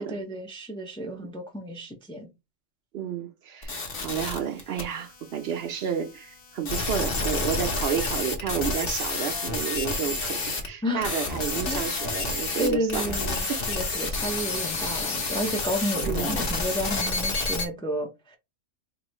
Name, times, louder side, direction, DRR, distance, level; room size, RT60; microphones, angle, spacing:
voice 1, 0.0-2.3 10.8-11.1 11.7-12.0 12.6-18.4, equal, 5° left, 0.4 m, -31 dB
voice 2, 2.9-13.2 13.5-13.6 15.9-16.3, right 8 dB, 65° right, 0.7 m, -31 dB
sound 1, 3.6-4.8 6.7-10.7 11.0-17.7, left 3 dB, 55° left, 1.0 m, -29 dB
3.0 x 2.6 x 4.1 m
omnidirectional pair, 1.2 m